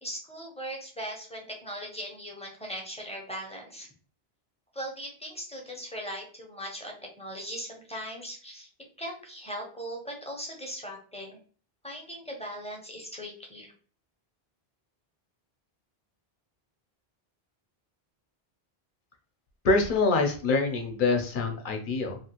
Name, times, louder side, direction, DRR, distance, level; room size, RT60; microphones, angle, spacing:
voice 1, 0.0-3.9 4.7-8.7 9.0-11.4 11.8-13.7, equal, 10° left, 0 dB, 0.5 m, -39 dB
voice 2, 19.6-22.2, left 3 dB, 60° left, 4 dB, 0.7 m, -25 dB
3.0 x 2.4 x 2.8 m, 0.42 s
omnidirectional pair, 1.0 m